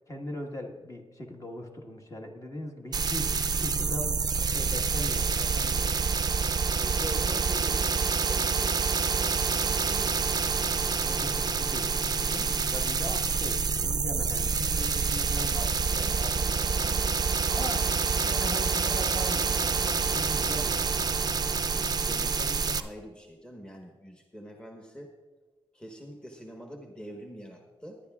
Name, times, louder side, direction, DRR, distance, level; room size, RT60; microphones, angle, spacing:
voice 1, 0.1-6.2 11.0-20.9, left 1 dB, 30° left, 1 dB, 1.5 m, -40 dB
sound 1, 2.9-22.8, right 5 dB, 40° right, 0.5 m, -27 dB
voice 2, 6.8-10.1 15.9-16.2 16.8-17.1 21.0-21.2 21.6-25.1 25.7-28.0, equal, 10° left, 2 dB, 1.2 m, -44 dB
20.0 x 10.0 x 2.4 m, 1.3 s
wide cardioid pair, 90°, 10 cm